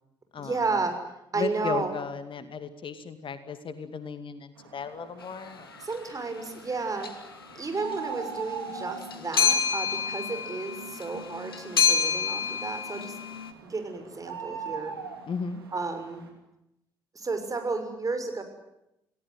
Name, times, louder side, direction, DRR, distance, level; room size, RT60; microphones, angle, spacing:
voice 1, 0.4-1.0 1.3-1.9 5.8-7.1 7.5-13.2 13.6-14.9 15.7-16.2 17.1-18.4, right 3 dB, 30° right, 7 dB, 6.4 m, -32 dB
voice 2, 1.4-5.8 15.3-15.6, left 5 dB, 45° left, 11 dB, 2.3 m, -35 dB
sound 1, 4.6-16.3, right 6 dB, 85° right, 3.4 m, -43 dB
sound 2, 5.7-5.9 7.0-7.4 7.7-13.5, left 6 dB, 85° left, 1.5 m, -29 dB
29.5 x 19.0 x 9.3 m, 0.84 s
figure-of-eight pair, 45°, 12 cm